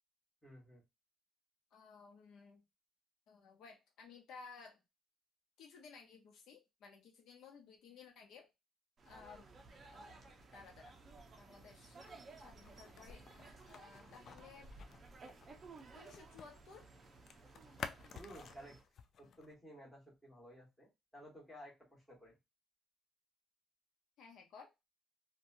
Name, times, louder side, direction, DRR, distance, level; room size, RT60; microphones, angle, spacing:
voice 1, 0.4-0.8 18.2-18.8 19.2-22.3, equal, ahead, 1.4 m, -55 dB
voice 2, 1.7-2.6 3.3-4.8 5.6-8.5 9.0-9.4 9.9-10.2 10.5-10.9 11.4-12.0 12.4-13.2 13.7-14.7 15.9-16.9 24.2-24.7, left 5 dB, 65° left, 0.7 m, -57 dB
sound 1, 9.0-18.8, right 3 dB, 30° right, 0.6 m, -57 dB
sound 2, 12.0-16.6 16.8-19.5, left 6 dB, 45° left, 0.3 m, -52 dB
2.8 x 2.2 x 2.6 m
cardioid pair, 160°, 0 cm